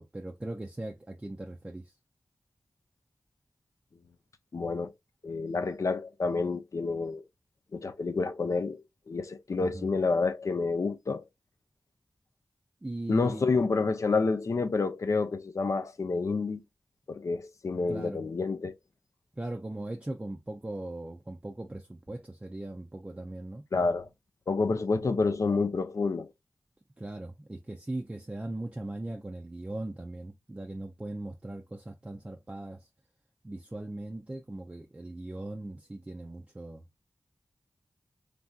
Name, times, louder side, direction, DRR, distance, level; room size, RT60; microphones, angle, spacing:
voice 1, 0.0-1.9 9.6-9.9 12.8-13.5 17.9-18.3 19.4-23.6 27.0-32.9 33.4-36.8, right 2 dB, 20° right, 0.4 m, -39 dB
voice 2, 4.5-4.9 5.2-7.2 7.7-11.2 13.1-16.6 17.1-18.7 23.7-24.1 24.5-26.3, left 4 dB, 60° left, 0.5 m, -29 dB
3.2 x 2.5 x 2.2 m
cardioid pair, 50°, 6 cm